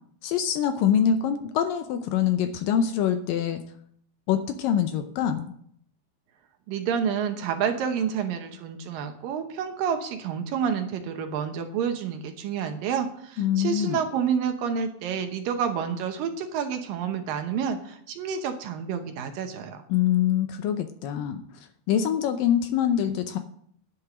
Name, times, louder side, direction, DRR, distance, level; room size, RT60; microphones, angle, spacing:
voice 1, 0.2-3.6 4.3-5.5 13.4-14.0 19.9-21.4 21.9-23.4, left 9 dB, 75° left, 8 dB, 2.2 m, -24 dB
voice 2, 6.7-19.8, right 7 dB, 70° right, 6 dB, 2.5 m, -29 dB
10.5 x 7.8 x 6.2 m, 0.64 s
omnidirectional pair, 4.5 m